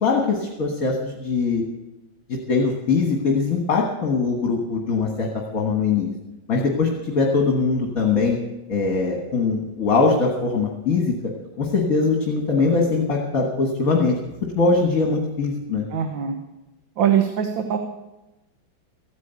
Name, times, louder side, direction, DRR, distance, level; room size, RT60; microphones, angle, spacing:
voice 1, 0.0-1.6 2.3-6.1 6.5-8.4 8.7-11.1 11.6-14.2 14.5-15.9, left 4 dB, 50° left, 1 dB, 1.9 m, -21 dB
voice 2, 15.9-16.4 17.0-17.8, right 9 dB, 85° right, 5 dB, 1.7 m, -22 dB
15.0 x 9.6 x 8.1 m, 1.0 s
omnidirectional pair, 2.0 m